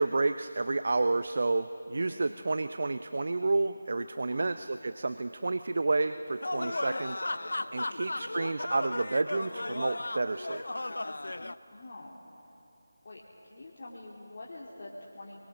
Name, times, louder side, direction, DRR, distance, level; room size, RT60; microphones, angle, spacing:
voice 1, 0.0-7.2 7.7-10.6, right 3 dB, 55° right, 11 dB, 0.6 m, -30 dB
sound 1, 6.4-11.5, left 2 dB, 75° left, 0.7 m, -35 dB
voice 2, 11.7-12.2 13.0-15.4, left 2 dB, 45° left, -5 dB, 2.7 m, -46 dB
28.0 x 22.5 x 6.2 m, 3.0 s
figure-of-eight pair, 160°, 0 cm